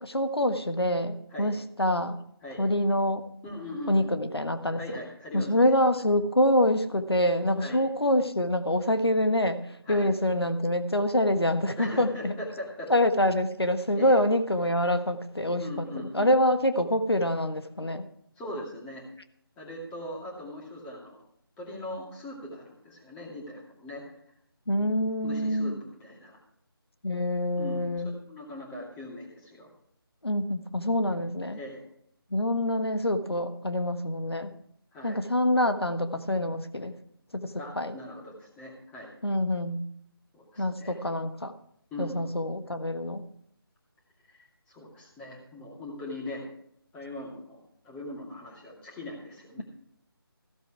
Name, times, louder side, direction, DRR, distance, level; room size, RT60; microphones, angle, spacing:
voice 1, 0.0-2.2 2.6-3.2 3.9-4.8 5.3-12.3 12.9-18.1 24.7-25.8 27.0-28.1 30.2-31.6 32.3-34.5 35.0-36.9 37.3-37.9 39.2-39.8 40.6-41.5 42.0-43.2, left 1 dB, 90° left, 8 dB, 1.4 m, -26 dB
voice 2, 3.4-4.1 4.8-5.7 7.6-7.8 9.9-10.1 11.8-12.9 13.9-14.2 15.6-16.3 18.4-19.1 19.6-21.2 21.6-24.0 24.9-25.0 25.2-26.4 27.6-29.7 31.5-31.8 34.9-35.3 37.6-39.1 40.3-41.0 41.9-42.1 44.3-46.4 46.9-47.6 47.8-49.6, left 1 dB, 10° left, -3 dB, 2.4 m, -40 dB
15.5 x 8.0 x 4.8 m, 0.70 s
figure-of-eight pair, 160°, 13 cm